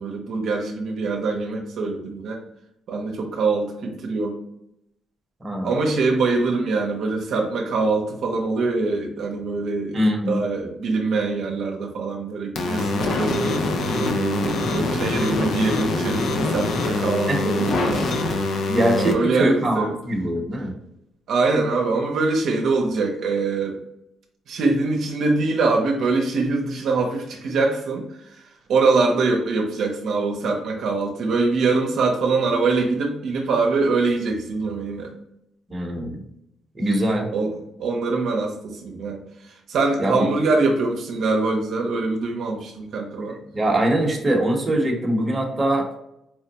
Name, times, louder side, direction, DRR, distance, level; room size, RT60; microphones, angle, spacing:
voice 1, 0.0-2.4 2.9-4.4 5.6-10.0 10.3-18.5 18.9-19.9 21.3-23.8 24.5-35.1 37.3-37.5 37.8-43.4, right 3 dB, 70° right, 0 dB, 0.6 m, -23 dB
voice 2, 5.4-5.7 9.9-10.4 17.3-17.6 18.7-20.7 35.7-36.2 36.7-37.3 40.0-40.3 43.5-45.9, right 1 dB, 25° right, 0 dB, 0.9 m, -22 dB
sound 1, 12.6-19.1, left 2 dB, 65° left, 0.6 m, -24 dB
4.5 x 2.1 x 2.8 m, 0.81 s
cardioid pair, 90°, 0 cm